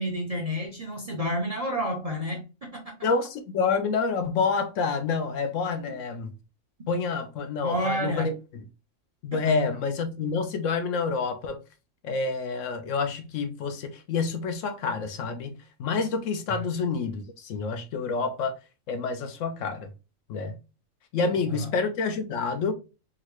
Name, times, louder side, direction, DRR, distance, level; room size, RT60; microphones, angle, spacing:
voice 1, 0.0-2.8 7.6-8.3 9.3-9.4 16.5-16.7 21.3-21.7, equal, 40° right, 0.5 m, -30 dB
voice 2, 3.0-6.3 6.9-8.3 9.2-11.6 12.0-18.5 18.9-19.9 20.3-20.6 21.1-22.7, left 4 dB, 70° left, 0.9 m, -28 dB
3.8 x 2.1 x 2.9 m
omnidirectional pair, 1.4 m